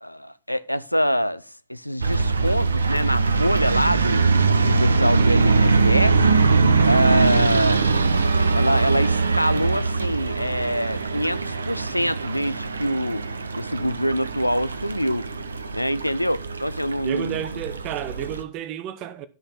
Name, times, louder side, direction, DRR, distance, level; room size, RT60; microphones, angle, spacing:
voice 1, 0.0-1.4 1.7-4.3 4.6-6.2 6.8-7.9 8.5-13.3 13.5-15.3 15.7-17.4, equal, 90° left, 0.5 m, -25 dB
sound 1, 2.0-18.4, right 4 dB, 75° right, 0.7 m, -22 dB
voice 2, 17.0-19.3, right 10 dB, 40° right, 0.8 m, -31 dB
12.0 x 5.5 x 5.7 m
figure-of-eight pair, 90°, 0 cm